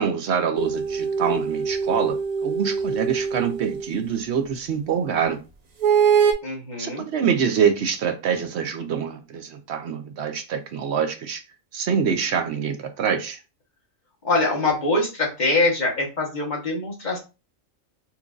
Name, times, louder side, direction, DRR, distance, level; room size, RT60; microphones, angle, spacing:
voice 1, 0.0-5.4 6.8-11.4 11.7-13.4, right 7 dB, 65° right, 0.8 m, -25 dB
sound 1, 0.6-3.9 5.8-6.3, right 6 dB, 80° right, 0.3 m, -23 dB
voice 2, 6.4-7.0 14.2-17.2, left 2 dB, 40° left, 1.2 m, -23 dB
4.4 x 2.5 x 2.4 m
omnidirectional pair, 1.3 m